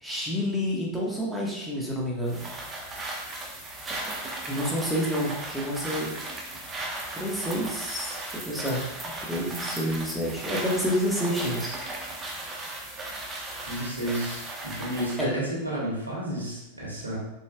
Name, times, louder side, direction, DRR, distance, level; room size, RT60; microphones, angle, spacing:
voice 1, 0.0-2.4 4.5-6.1 7.1-8.8 9.2-11.7 15.2-15.3, equal, ahead, -4 dB, 1.6 m, -29 dB
sound 1, 2.3-15.2, right 2 dB, 20° right, 1.3 m, -36 dB
voice 2, 13.6-17.2, right 1 dB, 80° right, -4 dB, 2.3 m, -31 dB
7.2 x 6.0 x 2.4 m, 0.91 s
figure-of-eight pair, 90°, 0 cm